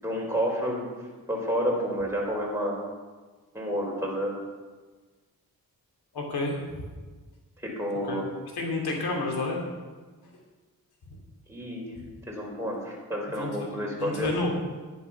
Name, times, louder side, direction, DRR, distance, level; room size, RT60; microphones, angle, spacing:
voice 1, 0.0-0.9 1.3-2.8 3.5-4.3 7.6-8.2 11.5-11.8 12.3-14.3, equal, 5° right, -3 dB, 4.7 m, -30 dB
voice 2, 6.1-6.5 8.0-8.2 8.5-9.6 12.0-12.1 13.3-14.5, left 2 dB, 85° left, 0 dB, 2.8 m, -30 dB
10.5 x 10.5 x 5.9 m, 1.3 s
cardioid pair, 75°, 37 cm